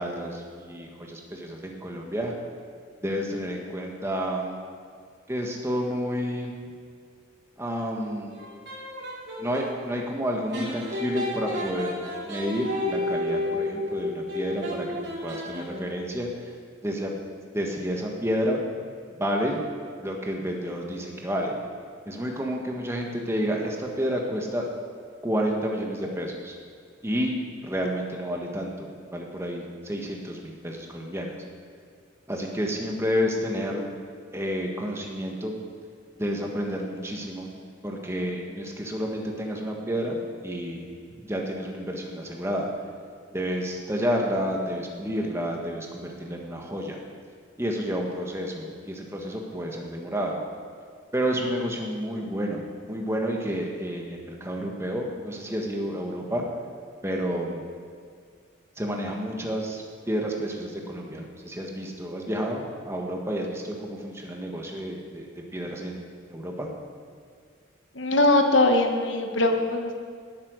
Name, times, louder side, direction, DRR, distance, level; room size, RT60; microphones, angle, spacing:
voice 1, 0.0-2.3 3.0-4.6 5.3-6.5 7.6-8.4 9.4-12.0 12.2-14.9 15.2-16.5 16.8-17.1 17.5-18.6 19.1-19.6 20.0-21.6 22.0-24.6 25.2-26.6 27.0-31.3 32.3-33.8 34.3-35.6 36.2-37.5 37.8-40.9 41.2-42.7 43.3-47.0 47.6-50.4 51.1-56.4 57.0-57.7 58.8-65.3 65.5-66.7, equal, 15° right, 0 dB, 1.7 m, -30 dB
sound 1, 8.3-9.7 10.5-16.0, left 1 dB, 55° right, 4.3 m, -31 dB
voice 2, 67.9-69.9, left 2 dB, 65° left, 4 dB, 1.4 m, -21 dB
18.0 x 8.7 x 6.6 m, 2.1 s
head